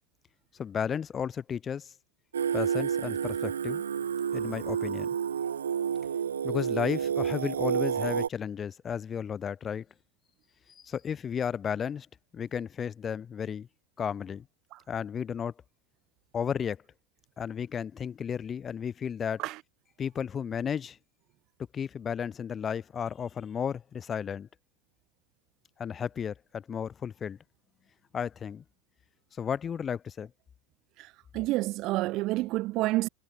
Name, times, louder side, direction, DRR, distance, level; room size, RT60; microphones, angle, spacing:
voice 1, 0.5-1.9 2.5-3.8 4.3-5.1 6.4-9.9 10.7-12.1 12.3-13.7 14.0-14.5 14.9-15.5 16.3-16.8 17.4-19.4 20.0-21.0 21.7-24.5 25.8-27.4 28.1-28.6 29.4-30.3, left 7 dB, 25° left, 5.3 m, -33 dB
Singing, 2.3-8.3, right 8 dB, 70° right, 4.9 m, -30 dB
voice 2, 31.3-33.1, right 19 dB, 45° right, 5.3 m, -28 dB
figure-of-eight pair, 80°, 0 cm